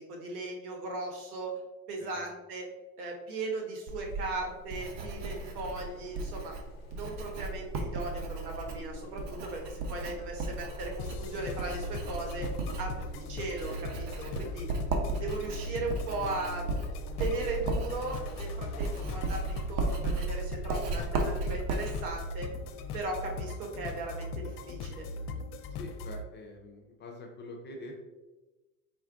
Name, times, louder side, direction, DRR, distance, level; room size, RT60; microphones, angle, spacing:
voice 1, 0.0-1.5 1.9-2.7 3.0-6.5 6.9-12.5 12.8-14.7 15.2-16.8 17.2-22.5 22.9-25.1, right 2 dB, 65° right, 1 dB, 1.3 m, -37 dB
Writing, 3.9-23.4, right 2 dB, 40° right, 0.8 m, -36 dB
sound 1, 5.0-19.5, left 1 dB, 40° left, 1.1 m, -53 dB
sound 2, 11.0-26.2, left 3 dB, 65° left, 0.6 m, -40 dB
voice 2, 25.8-28.0, left 1 dB, 25° left, 0 dB, 0.5 m, -45 dB
4.5 x 2.3 x 3.5 m, 1.1 s
hypercardioid pair, 90°, 49 cm